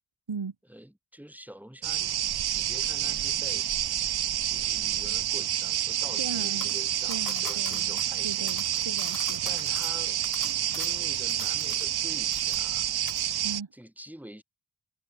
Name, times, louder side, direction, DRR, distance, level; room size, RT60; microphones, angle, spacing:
voice 1, 0.7-2.0 2.5-3.7 4.5-8.5 9.4-10.2 10.7-12.9 13.7-14.4, right 1 dB, 5° right, 1.9 m, -47 dB
sound 1, 1.8-13.6, right 11 dB, 60° right, 0.5 m, -29 dB
voice 2, 6.2-6.8 7.1-9.6 13.4-13.7, right 5 dB, 75° right, 3.6 m, -38 dB
sound 2, 6.6-12.0 12.3-12.8 13.1-13.3, left 5 dB, 45° left, 1.5 m, -43 dB
wide cardioid pair, 75°, 45 cm